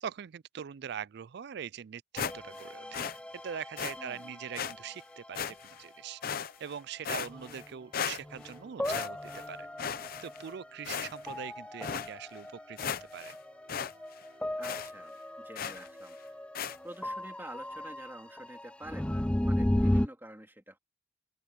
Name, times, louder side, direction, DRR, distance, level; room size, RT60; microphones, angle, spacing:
voice 1, 0.0-3.1 3.4-6.2 6.6-9.7 10.2-13.3, right 8 dB, 60° right, 0.4 m, -42 dB
sound 1, 2.2-2.7 2.9-3.2 3.8-3.9 4.5-4.7 5.3-5.8 6.2-6.7 7.0-7.6 7.9-8.5 8.8-9.4 9.8-10.5 10.8-11.4 11.8-12.1 12.5-12.6 12.8-13.3 13.7-13.9 14.2-14.3 14.6-14.9 15.5-15.9 16.5-16.8, left 7 dB, 50° left, 0.7 m, -36 dB
sound 2, 2.2-6.0 7.2-7.7 8.2-20.1, left 1 dB, 5° left, 0.4 m, -36 dB
voice 2, 4.0-4.3 14.6-16.2 16.8-20.8, right 1 dB, 10° right, 3.4 m, -48 dB
sound 3, 4.6-18.5, right 2 dB, 30° right, 4.8 m, -66 dB
open air
head